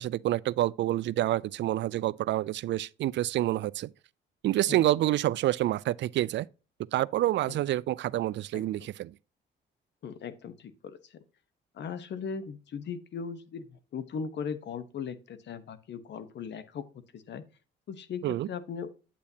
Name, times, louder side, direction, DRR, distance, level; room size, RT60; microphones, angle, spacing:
voice 1, 0.0-3.9 4.4-6.5 6.9-9.1 18.2-18.5, right 14 dB, 65° right, 0.4 m, -28 dB
voice 2, 10.0-11.2 11.7-16.8 17.1-17.4 17.9-18.9, left 6 dB, 60° left, 1.1 m, -38 dB
8.5 x 8.4 x 2.8 m
cardioid pair, 90°, 20 cm